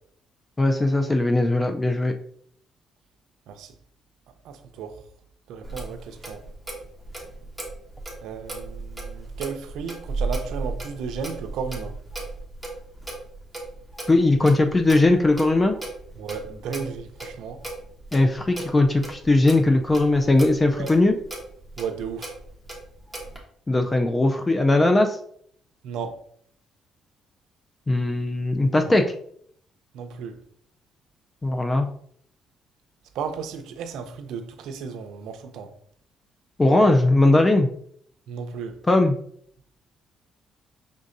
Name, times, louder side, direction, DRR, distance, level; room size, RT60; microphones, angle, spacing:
voice 1, 0.6-2.1 14.1-15.8 18.1-21.2 23.7-25.2 27.9-29.0 31.4-31.9 36.6-37.7 38.9-39.1, left 2 dB, 20° left, 0.3 m, -19 dB
voice 2, 4.4-5.0 5.5-6.4 8.2-11.9 16.2-17.6 20.8-20.9 21.8-22.3 25.8-26.2 29.9-30.4 33.1-35.7 38.3-38.8, right 6 dB, 85° right, 0.5 m, -34 dB
Clock, 5.6-23.4, right 2 dB, ahead, 1.2 m, -36 dB
5.3 x 3.5 x 2.5 m
cardioid pair, 110°, 0 cm